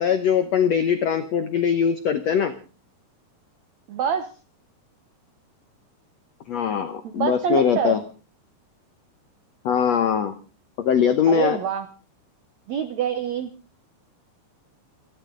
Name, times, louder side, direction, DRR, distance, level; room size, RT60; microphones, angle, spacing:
voice 1, 0.0-2.5 6.5-8.0 9.6-10.3 10.8-11.6, left 7 dB, 85° left, 9 dB, 1.4 m, -21 dB
voice 2, 3.9-4.3 7.0-8.0 11.3-11.9 12.7-13.5, right 8 dB, 85° right, 10 dB, 1.5 m, -26 dB
28.5 x 11.5 x 3.8 m, 0.35 s
omnidirectional pair, 4.7 m